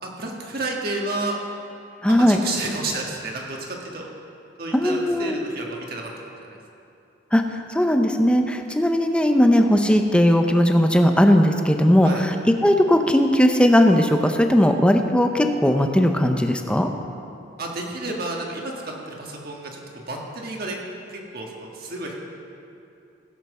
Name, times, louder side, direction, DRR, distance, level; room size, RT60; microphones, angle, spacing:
voice 1, 0.0-1.4 2.1-4.1 4.6-6.1 6.5-6.6 12.0-12.2 17.6-19.8 20.1-20.8 21.1-22.1, right 2 dB, 55° right, -1 dB, 1.7 m, -31 dB
voice 2, 2.0-2.4 4.7-5.4 7.3-7.4 7.7-12.4 12.6-16.9, equal, 5° left, 5 dB, 0.7 m, -18 dB
16.5 x 5.9 x 6.7 m, 2.7 s
head